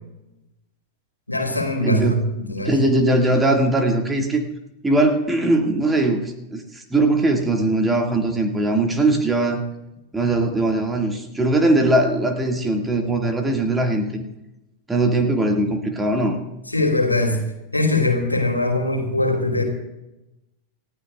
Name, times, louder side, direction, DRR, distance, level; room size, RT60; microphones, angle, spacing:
voice 1, 1.3-2.7 16.7-17.4 17.7-19.6, left 2 dB, 85° left, 3 dB, 2.6 m, -21 dB
voice 2, 1.8-2.2 2.6-4.4 4.8-9.6 10.1-14.2 14.9-16.4, right 2 dB, 10° right, 2 dB, 2.1 m, -20 dB
28.5 x 15.0 x 2.4 m, 0.96 s
figure-of-eight pair, 90°, 0 cm